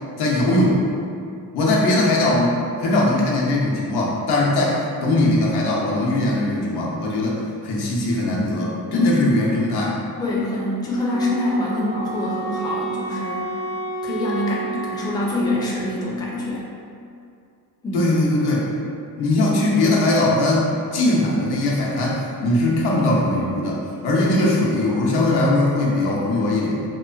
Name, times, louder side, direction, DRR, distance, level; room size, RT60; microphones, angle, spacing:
voice 1, 0.2-0.8 1.5-7.4 7.6-10.0 17.9-18.7 19.2-23.8 24.0-26.8, left 1 dB, 90° left, -4 dB, 0.6 m, -20 dB
voice 2, 10.2-13.5 14.0-16.7 17.8-18.0, left 1 dB, 10° left, -4 dB, 0.3 m, -25 dB
Wind instrument woodwind instrument, 10.9-15.7, right 3 dB, 75° right, 0.8 m, -30 dB
2.9 x 2.1 x 2.4 m, 2.4 s
cardioid pair, 115°, 38 cm